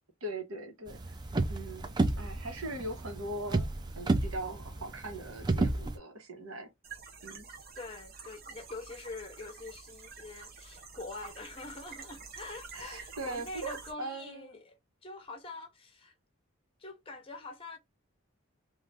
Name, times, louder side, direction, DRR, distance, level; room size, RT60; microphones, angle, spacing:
voice 1, 0.2-1.2 1.5-3.7 4.0-6.7 7.2-7.5 12.7-14.6, right 1 dB, 75° right, 1.2 m, -40 dB
sound 1, 0.9-6.0, right 2 dB, 20° right, 0.3 m, -31 dB
sound 2, 6.8-13.9, right 5 dB, 45° right, 0.7 m, -49 dB
voice 2, 7.7-16.1 16.8-17.8, left 3 dB, 25° left, 0.7 m, -45 dB
2.6 x 2.5 x 3.3 m
head